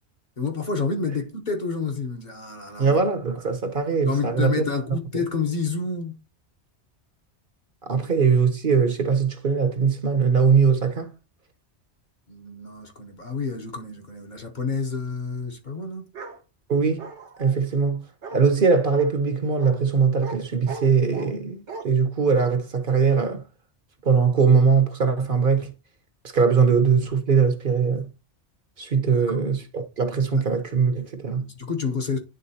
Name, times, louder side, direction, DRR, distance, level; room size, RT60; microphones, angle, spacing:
voice 1, 0.4-3.0 4.0-6.2 8.0-8.1 12.3-16.1 26.4-26.5 29.0-29.4 30.3-30.4 31.4-32.2, left 4 dB, 45° left, 1.0 m, -29 dB
voice 2, 2.8-4.7 7.8-11.1 16.7-17.1 17.4-18.0 18.3-23.4 24.0-25.7 26.3-28.1 28.8-31.5, right 5 dB, 55° right, 0.9 m, -21 dB
Bark, 16.1-16.4 17.0-17.5 18.2-18.4 18.9-19.1 19.6-19.8 20.2-20.4 20.7-21.3 21.7-21.8, right 4 dB, 80° right, 1.3 m, -37 dB
10.0 x 3.6 x 2.7 m
omnidirectional pair, 1.2 m